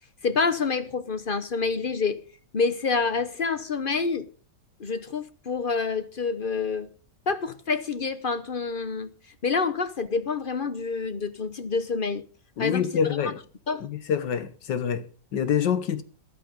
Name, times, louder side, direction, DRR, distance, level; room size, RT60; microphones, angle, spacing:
voice 1, 0.2-2.2 2.5-4.3 4.8-6.9 7.3-9.1 9.4-12.2 12.6-13.3 13.7-13.9, left 4 dB, 45° left, 0.7 m, -27 dB
voice 2, 12.6-13.4 13.8-16.0, left 8 dB, 75° left, 1.8 m, -26 dB
13.5 x 12.0 x 5.1 m
omnidirectional pair, 1.9 m